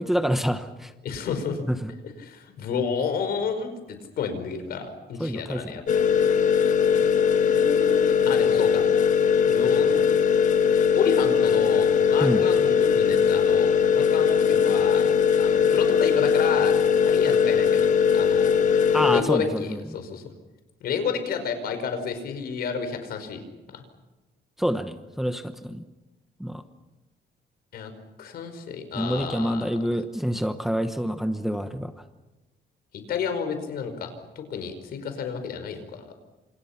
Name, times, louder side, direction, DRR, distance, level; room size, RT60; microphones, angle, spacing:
voice 1, 0.0-0.9 1.7-1.9 5.2-5.7 12.2-12.4 18.9-19.8 24.6-25.8 26.4-26.6 28.9-31.9, equal, ahead, 8 dB, 1.0 m, -27 dB
voice 2, 1.0-1.6 2.2-5.8 7.4-8.8 9.5-10.0 11.0-15.1 15.4-16.8 17.1-18.5 19.1-20.3 20.8-23.4 23.7-23.8 27.7-27.9 28.2-29.7 32.9-34.1 34.4-36.1, left 6 dB, 65° left, 8 dB, 5.2 m, -31 dB
sound 1, 5.9-19.2, left 7 dB, 45° left, 1.5 m, -20 dB
29.5 x 27.5 x 5.9 m, 1.1 s
cardioid pair, 165°, 17 cm